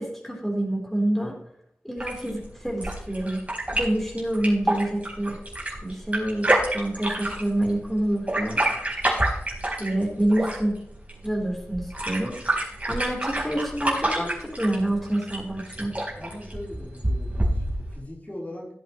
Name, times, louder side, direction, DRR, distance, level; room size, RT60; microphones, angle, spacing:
voice 1, 0.0-1.4 1.8-3.4 3.7-5.4 5.8-6.5 6.7-8.7 9.8-10.7 11.2-15.9, right 1 dB, 5° left, -2 dB, 3.9 m, -27 dB
sound 1, 2.0-18.0, right 1 dB, 25° right, 4.5 m, -29 dB
voice 2, 16.2-18.7, left 1 dB, 30° left, -4 dB, 4.0 m, -40 dB
17.0 x 7.9 x 3.2 m, 0.73 s
wide cardioid pair, 55°, 5 cm